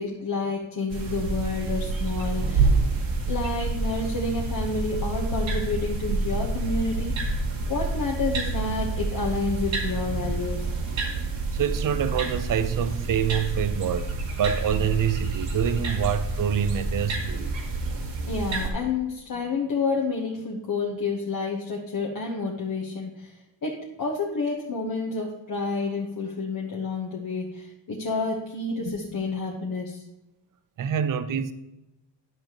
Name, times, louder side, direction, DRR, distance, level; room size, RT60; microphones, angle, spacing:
voice 1, 0.0-2.7 3.2-7.2 7.7-10.7 18.3-30.0, left 3 dB, 45° left, 1.1 m, -29 dB
sound 1, 0.9-18.7, right 3 dB, 90° right, 1.7 m, -28 dB
voice 2, 11.5-14.1 14.4-17.5 30.8-31.5, right 8 dB, 45° right, 0.6 m, -26 dB
10.5 x 6.7 x 3.0 m
wide cardioid pair, 130°, 45 cm